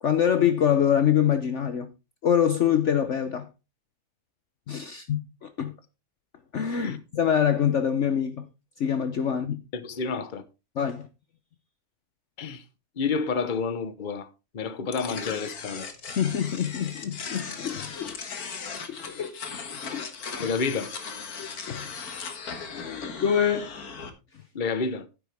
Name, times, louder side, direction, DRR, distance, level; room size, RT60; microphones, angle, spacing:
voice 1, 0.0-1.9 2.2-3.5 4.7-5.7 6.5-8.5 8.8-9.6 10.8-11.1 16.1-19.3 19.9-20.0 21.4-21.9 22.7-23.7, left 8 dB, 55° left, 1.0 m, -25 dB
voice 2, 9.7-10.4 12.4-12.6 13.0-14.3 14.5-15.9 20.4-20.9 24.5-25.1, left 5 dB, 35° left, 1.0 m, -29 dB
sound 1, 14.9-24.1, left 5 dB, 70° left, 2.0 m, -38 dB
11.5 x 10.0 x 3.4 m
omnidirectional pair, 1.7 m